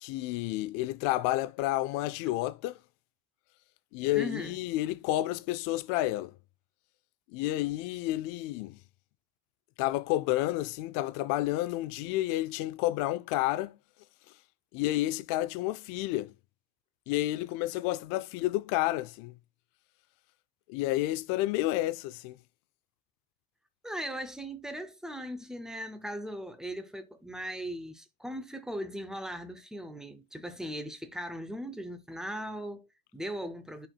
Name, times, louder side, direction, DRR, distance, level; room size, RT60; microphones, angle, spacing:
voice 1, 0.0-2.8 3.9-6.3 7.3-8.8 9.8-13.8 14.7-16.3 17.1-19.3 20.7-22.4, left 16 dB, 60° left, 0.5 m, -30 dB
voice 2, 4.2-4.6 23.8-33.9, equal, ahead, 0.4 m, -39 dB
10.5 x 4.5 x 2.2 m
cardioid pair, 155°, 39 cm